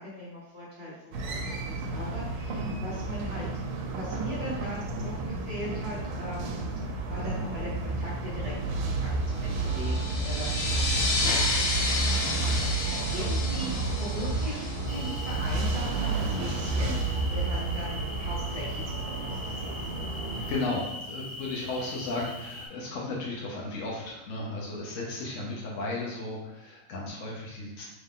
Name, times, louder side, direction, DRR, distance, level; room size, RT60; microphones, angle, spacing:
voice 1, 0.0-3.5 3.9-6.6 7.1-17.0 17.3-19.9, equal, 20° left, -11 dB, 1.2 m, -40 dB
sound 1, 1.1-20.6, right 3 dB, 85° right, 1.5 m, -31 dB
sound 2, 9.4-15.7, left 3 dB, 90° left, 1.6 m, -31 dB
sound 3, 14.9-22.7, left 1 dB, 55° right, 1.4 m, -41 dB
voice 2, 20.3-27.8, left 2 dB, 70° left, -3 dB, 0.7 m, -34 dB
3.6 x 3.1 x 3.6 m, 0.98 s
omnidirectional pair, 2.2 m